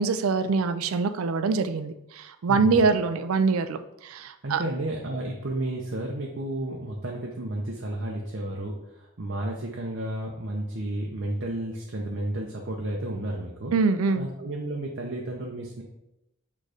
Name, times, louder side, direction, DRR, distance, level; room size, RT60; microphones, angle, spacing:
voice 1, 0.0-4.6 13.7-14.3, right 4 dB, 90° right, 10 dB, 0.4 m, -24 dB
voice 2, 2.5-2.8 4.4-13.7 14.2-15.8, right 1 dB, 55° right, -1 dB, 0.7 m, -32 dB
6.5 x 3.2 x 4.9 m, 0.87 s
head